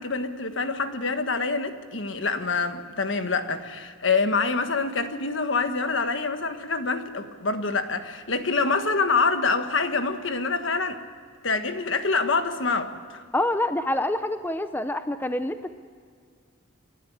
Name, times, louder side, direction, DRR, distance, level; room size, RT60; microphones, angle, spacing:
voice 1, 0.0-11.0 11.4-13.2, left 4 dB, 65° left, 8 dB, 1.5 m, -26 dB
voice 2, 13.3-15.7, left 1 dB, 10° left, 10 dB, 0.6 m, -26 dB
29.0 x 12.0 x 8.8 m, 2.1 s
head